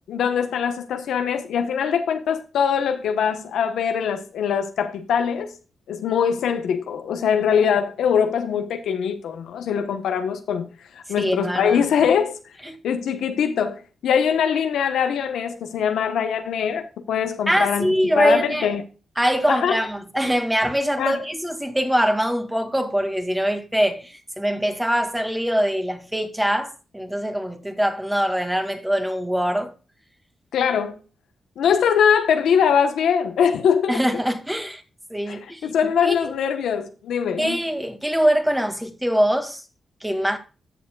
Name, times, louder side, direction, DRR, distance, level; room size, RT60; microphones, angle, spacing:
voice 1, 0.1-5.5 5.9-10.7 10.9-12.4 12.8-17.9 18.1-18.8 19.5-19.8 21.0-21.2 30.5-31.0 31.6-34.0 35.3-37.6, left 7 dB, 85° left, 1.0 m, -22 dB
voice 2, 11.2-11.9 12.6-12.7 17.5-18.7 19.2-29.7 33.9-34.8 35.1-35.7 36.0-36.3 37.4-39.6 40.0-40.4, equal, 10° right, 2.0 m, -23 dB
13.5 x 7.1 x 2.3 m
cardioid pair, 60°, 0 cm